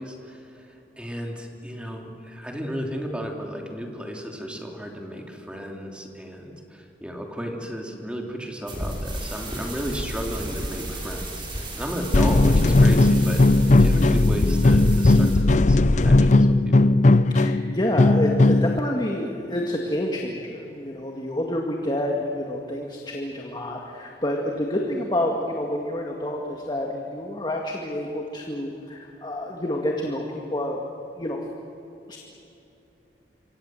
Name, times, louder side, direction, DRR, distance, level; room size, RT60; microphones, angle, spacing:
voice 1, 0.0-16.4 16.7-16.8, equal, 5° right, 1 dB, 3.1 m, -34 dB
sound 1, 8.7-15.4, right 1 dB, 30° right, 6.0 m, -34 dB
sound 2, 12.1-18.8, left 2 dB, 45° left, 0.6 m, -17 dB
voice 2, 17.3-30.2 30.5-30.8 31.2-31.4 32.1-32.2, left 1 dB, 25° left, 0 dB, 2.0 m, -28 dB
27.5 x 24.5 x 7.8 m, 2.9 s
head